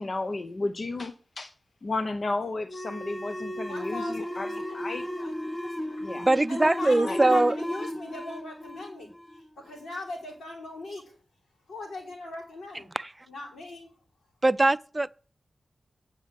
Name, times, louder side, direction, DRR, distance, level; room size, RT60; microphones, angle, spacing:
voice 1, 0.0-1.5 1.8-4.5 4.7-5.0 6.0-6.3 7.0-7.2, left 2 dB, 55° left, 0.8 m, -33 dB
sound 1, 2.7-9.9, left 1 dB, 25° left, 1.3 m, -35 dB
voice 2, 3.6-6.0 6.5-11.1 11.7-12.9 13.3-13.9, left 2 dB, 90° left, 3.6 m, -40 dB
voice 3, 6.2-7.6 12.9-13.1 14.4-15.1, right 2 dB, 30° right, 0.4 m, -22 dB
9.3 x 4.9 x 7.6 m
cardioid pair, 40°, 0 cm